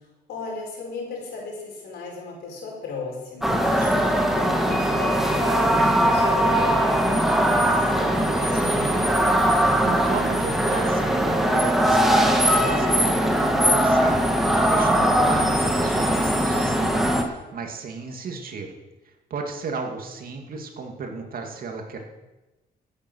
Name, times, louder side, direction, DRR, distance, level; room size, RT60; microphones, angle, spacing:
voice 1, 0.3-9.3, left 3 dB, 85° left, 0 dB, 4.6 m, -36 dB
sound 1, 3.4-17.2, equal, ahead, 2.0 m, -20 dB
voice 2, 9.8-18.7 19.1-22.1, right 4 dB, 60° right, 3 dB, 2.5 m, -34 dB
15.0 x 8.7 x 6.4 m, 1.1 s
cardioid pair, 100°, 17 cm